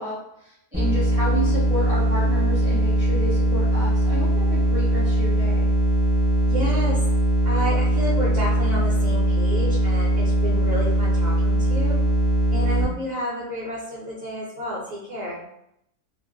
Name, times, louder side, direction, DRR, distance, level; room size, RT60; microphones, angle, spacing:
voice 1, 0.0-5.7, equal, 35° left, -7 dB, 0.7 m, -31 dB
sound 1, 0.7-12.8, right 1 dB, 10° right, 0.5 m, -20 dB
voice 2, 6.4-7.0 7.4-12.0 12.5-15.4, equal, 60° right, -7 dB, 0.9 m, -30 dB
2.5 x 2.1 x 2.4 m, 0.77 s
omnidirectional pair, 1.3 m